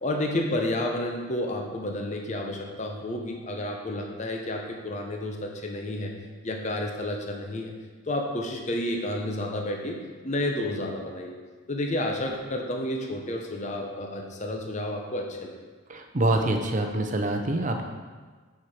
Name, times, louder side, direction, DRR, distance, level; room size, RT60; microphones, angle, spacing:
voice 1, 0.0-7.8 8.1-10.0 10.2-11.4 11.7-15.6, left 1 dB, 35° left, 2 dB, 0.7 m, -31 dB
voice 2, 15.9-17.8, right 2 dB, 35° right, 4 dB, 0.7 m, -25 dB
8.9 x 4.6 x 4.9 m, 1.4 s
head